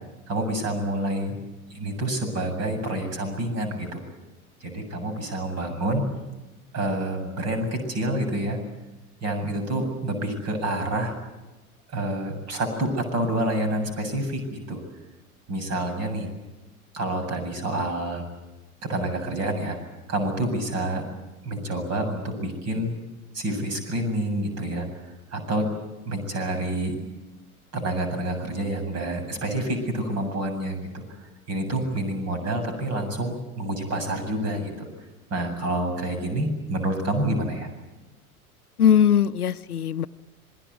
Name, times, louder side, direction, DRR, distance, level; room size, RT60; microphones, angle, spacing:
voice 1, 0.3-1.4 1.7-4.0 4.6-6.0 6.7-8.6 9.2-11.1 11.9-14.8 15.5-16.3 16.9-18.2 18.8-19.8 20.1-21.0 21.4-22.9 23.3-24.9 25.3-25.7 26.0-26.9 27.7-31.0 31.5-34.9 35.3-37.7, right 1 dB, 35° right, 7 dB, 7.7 m, -28 dB
voice 2, 38.8-40.1, left 9 dB, 80° left, 15 dB, 0.8 m, -20 dB
27.0 x 22.0 x 8.3 m, 1.1 s
figure-of-eight pair, 85°, 44 cm